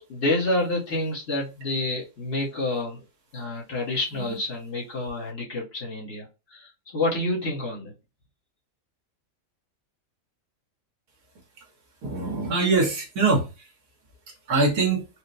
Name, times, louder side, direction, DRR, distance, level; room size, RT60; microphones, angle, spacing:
voice 1, 0.0-3.0 3.3-7.9, left 2 dB, 50° left, 1.3 m, -28 dB
voice 2, 12.0-13.7 14.5-15.1, right 3 dB, 85° right, 1.6 m, -23 dB
4.3 x 2.1 x 2.5 m
omnidirectional pair, 1.5 m